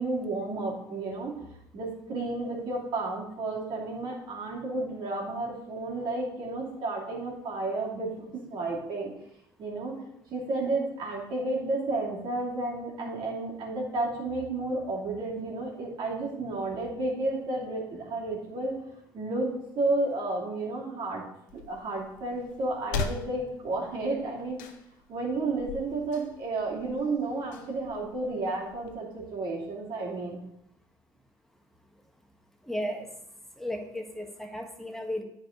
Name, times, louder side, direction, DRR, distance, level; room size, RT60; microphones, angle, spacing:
voice 1, 0.0-1.4 1.7-8.1 8.5-9.1 9.6-10.0 10.3-18.8 19.1-21.2 21.5-24.6 25.1-30.4, right 2 dB, 55° right, -3 dB, 2.9 m, -32 dB
sound 1, 21.5-28.9, left 5 dB, 90° left, 0.8 m, -41 dB
voice 2, 32.7-33.1 33.6-35.2, left 1 dB, 5° left, 3 dB, 1.5 m, -34 dB
9.1 x 4.8 x 5.2 m, 0.79 s
supercardioid pair, 80°, 10 cm